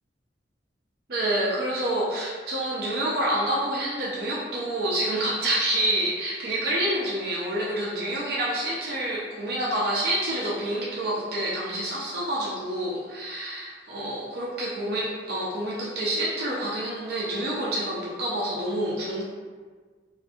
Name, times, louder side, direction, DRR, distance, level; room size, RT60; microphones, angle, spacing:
voice 1, 1.1-19.2, right 1 dB, 55° right, -5 dB, 0.4 m, -28 dB
2.5 x 2.2 x 2.6 m, 1.5 s
head